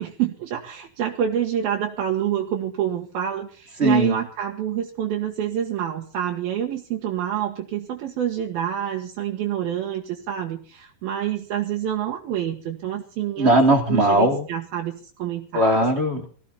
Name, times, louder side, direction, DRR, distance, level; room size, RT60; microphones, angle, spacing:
voice 1, 0.0-13.6 13.9-15.7, right 10 dB, 70° right, 0 dB, 3.2 m, -27 dB
voice 2, 3.8-4.2 13.4-14.5 15.5-16.3, right 1 dB, 20° right, 3 dB, 2.8 m, -18 dB
20.0 x 15.0 x 4.2 m, 0.42 s
omnidirectional pair, 4.5 m